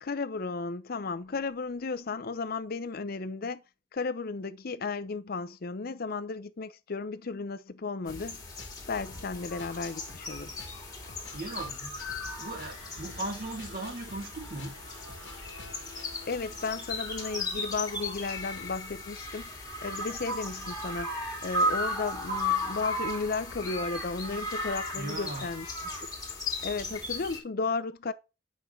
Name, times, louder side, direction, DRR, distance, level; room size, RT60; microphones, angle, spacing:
voice 1, 0.0-3.6 3.9-8.4 8.9-10.5 16.3-19.5 19.8-21.2 21.4-25.9 26.6-28.1, left 4 dB, 55° left, 0.6 m, -34 dB
sound 1, 8.1-16.1, left 3 dB, 70° left, 1.3 m, -51 dB
sound 2, 8.1-27.4, left 1 dB, 20° left, 2.3 m, -36 dB
voice 2, 11.3-12.0 12.4-14.7 24.9-25.5, right 2 dB, 55° right, 2.3 m, -37 dB
sound 3, 12.8-18.1, equal, 90° right, 2.6 m, -53 dB
8.4 x 5.3 x 3.2 m
head